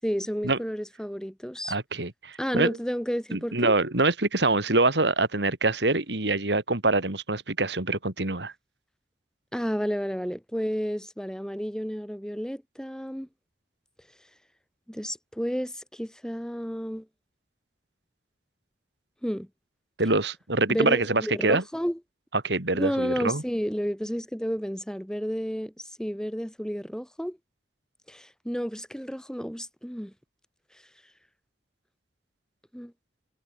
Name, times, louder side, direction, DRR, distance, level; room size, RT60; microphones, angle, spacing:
voice 1, 0.0-1.7 2.4-3.7 9.5-13.3 14.9-17.1 19.2-19.5 20.7-22.0 22.7-27.4 28.1-30.1 32.7-32.9, equal, 5° left, 6.3 m, -31 dB
voice 2, 1.7-2.8 3.3-8.5 20.0-21.6 22.3-23.4, right 2 dB, 80° right, 3.0 m, -25 dB
head